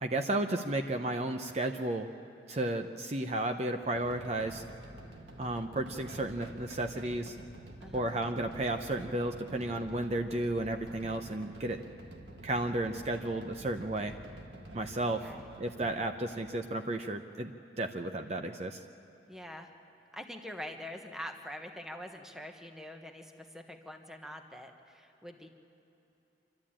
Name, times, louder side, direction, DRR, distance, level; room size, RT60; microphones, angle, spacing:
voice 1, 0.0-2.1 2.5-4.6 5.4-7.4 7.9-11.8 12.4-14.1 14.7-15.3 15.6-18.8, right 1 dB, 35° right, 5 dB, 0.7 m, -33 dB
sound 1, 3.9-15.9, right 1 dB, 90° right, 1.7 m, -49 dB
voice 2, 7.8-8.1 15.0-15.5 19.3-19.7 20.1-25.5, equal, 5° right, 4 dB, 1.1 m, -45 dB
27.0 x 12.5 x 8.8 m, 3.0 s
head